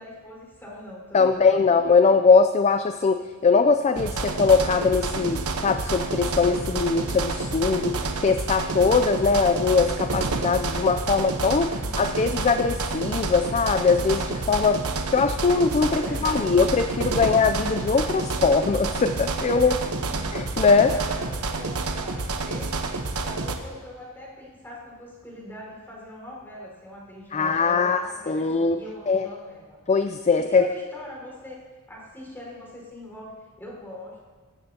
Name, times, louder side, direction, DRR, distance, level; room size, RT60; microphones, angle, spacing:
voice 1, 0.0-1.6 11.8-12.1 15.8-16.5 19.5-20.3 20.9-22.7 23.2-29.8 30.3-31.6 31.9-34.2, left 1 dB, 10° left, -4 dB, 4.7 m, -42 dB
voice 2, 1.1-14.8 15.1-19.7 20.3-20.9 27.3-28.8 29.1-29.3 29.9-30.7, left 4 dB, 30° left, 9 dB, 0.4 m, -21 dB
sound 1, 4.0-23.6, right 3 dB, 75° right, 1.0 m, -29 dB
18.5 x 14.5 x 2.8 m, 1.4 s
head